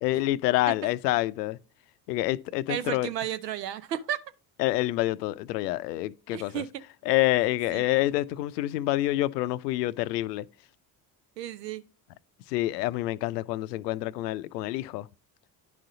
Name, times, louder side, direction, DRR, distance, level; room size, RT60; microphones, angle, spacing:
voice 1, 0.0-1.6 2.1-3.1 4.6-6.6 7.1-10.4 12.5-15.1, left 16 dB, 75° left, 0.6 m, -27 dB
voice 2, 2.7-4.2 6.3-6.7 7.7-7.9 11.4-11.8, right 10 dB, 85° right, 0.7 m, -33 dB
10.5 x 5.0 x 3.8 m
figure-of-eight pair, 50°, 49 cm